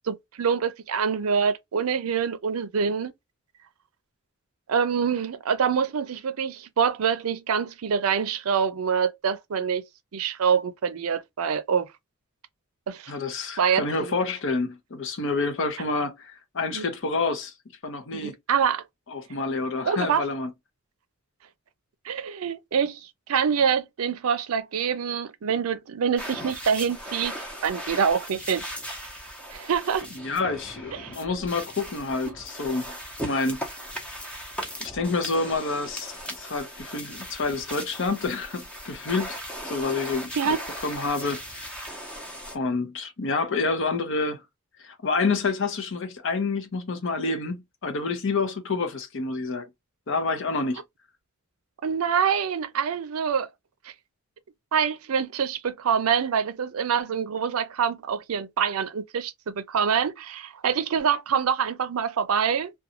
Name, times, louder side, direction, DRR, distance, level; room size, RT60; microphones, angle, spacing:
voice 1, 0.0-3.1 4.7-9.8 10.1-11.9 12.9-13.1 13.6-14.1 16.7-16.9 18.2-18.8 19.9-20.2 22.1-27.3 27.6-28.6 29.5-30.1 30.9-31.1 32.3-32.4 40.3-40.6 51.8-53.5 54.7-62.7, right 7 dB, 80° right, 0.5 m, -25 dB
voice 2, 13.1-17.5 17.8-18.3 19.1-20.5 30.1-32.8 33.2-33.6 34.8-39.4 39.6-40.5 40.8-41.9 42.5-44.4 44.8-49.7 50.1-50.8, left 3 dB, 60° left, 0.7 m, -28 dB
sound 1, 26.2-42.6, equal, 5° left, 0.7 m, -38 dB
2.5 x 2.2 x 2.8 m
head